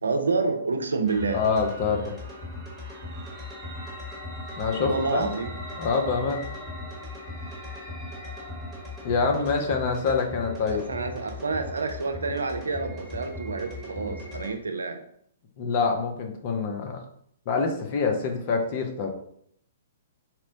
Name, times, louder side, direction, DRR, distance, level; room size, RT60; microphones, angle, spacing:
voice 1, 0.0-1.4 4.8-5.5 10.7-15.0, right 4 dB, 80° right, 6 dB, 0.4 m, -28 dB
sound 1, 1.1-14.6, left 2 dB, 10° left, 1.2 m, -38 dB
voice 2, 1.3-2.1 4.6-5.3 5.8-6.4 9.0-10.8 15.6-17.0 17.5-19.1, left 4 dB, 45° left, 4 dB, 0.6 m, -26 dB
4.2 x 2.1 x 2.6 m, 0.67 s
figure-of-eight pair, 115°, 0 cm